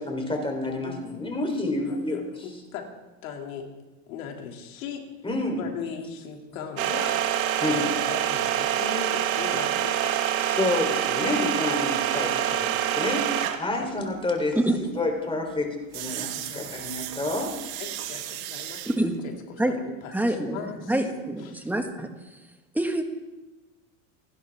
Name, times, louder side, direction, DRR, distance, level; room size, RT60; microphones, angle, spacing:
voice 1, 0.0-2.5 5.2-5.7 7.6-7.8 10.4-14.6 14.9-17.5, left 2 dB, 15° left, 2 dB, 3.7 m, -29 dB
voice 2, 1.6-2.3 2.7-2.8 3.2-3.7 4.1-5.1 5.6-7.2 7.7-10.3 13.8-13.9 16.4-16.8 17.8-18.9 19.2-20.9 21.4-21.7, left 6 dB, 85° left, 2 dB, 2.9 m, -38 dB
sound 1, 6.8-13.8 15.9-18.9, right 11 dB, 85° right, 1.6 m, -27 dB
voice 3, 20.1-22.1 22.7-23.0, right 1 dB, 5° right, 5 dB, 1.7 m, -26 dB
28.5 x 11.5 x 3.7 m, 1.1 s
supercardioid pair, 120°, 40 cm